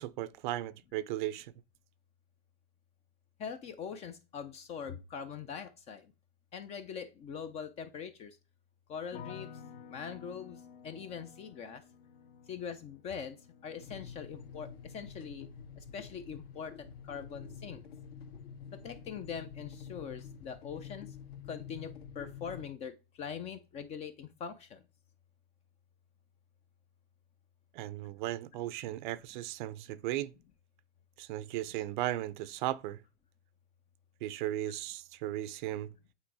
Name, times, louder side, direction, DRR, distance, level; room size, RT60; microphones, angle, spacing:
voice 1, 0.0-1.5 27.7-30.3 31.2-33.0 34.2-35.9, right 14 dB, 45° right, 0.5 m, -36 dB
voice 2, 3.4-6.1 6.5-8.4 8.9-9.5 9.9-11.8 12.5-15.5 15.8-17.8 18.7-21.1 21.5-24.8, left 7 dB, 20° left, 0.4 m, -42 dB
sound 1, 9.1-20.2 20.5-21.2, left 7 dB, 75° left, 1.7 m, -54 dB
sound 2, 13.8-22.6, left 7 dB, 60° left, 1.7 m, -48 dB
8.8 x 3.0 x 4.7 m
supercardioid pair, 140°, 35 cm